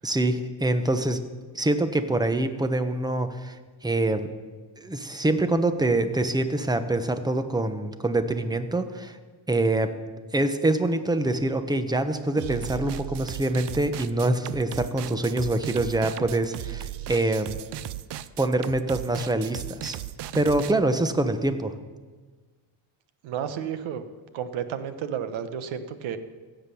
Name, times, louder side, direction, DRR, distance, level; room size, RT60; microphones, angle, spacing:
voice 1, 0.0-1.2 1.5-4.3 4.8-9.2 9.5-10.0 10.3-17.6 18.4-20.0 20.3-21.7, right 2 dB, 10° right, 10 dB, 1.0 m, -25 dB
sound 1, 12.4-20.7, right 13 dB, 60° right, 0.7 m, -36 dB
voice 2, 23.2-24.0 24.3-26.2, right 8 dB, 85° right, 11 dB, 1.2 m, -32 dB
16.0 x 7.9 x 7.0 m, 1.4 s
cardioid pair, 110°, 46 cm